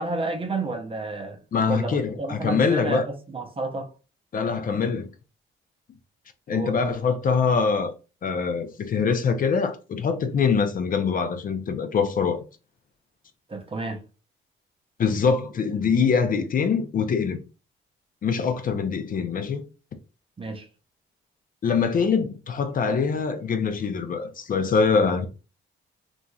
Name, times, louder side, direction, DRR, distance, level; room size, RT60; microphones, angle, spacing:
voice 1, 0.0-1.4 1.7-3.9 6.5-6.8 13.5-14.0 20.4-20.7, right 3 dB, 25° right, 0.6 m, -30 dB
voice 2, 1.5-3.1 4.3-5.1 6.5-7.9 8.2-12.4 15.0-17.4 18.2-19.6 21.6-25.3, left 5 dB, 45° left, 0.5 m, -24 dB
3.0 x 2.5 x 2.3 m
cardioid pair, 90°, 20 cm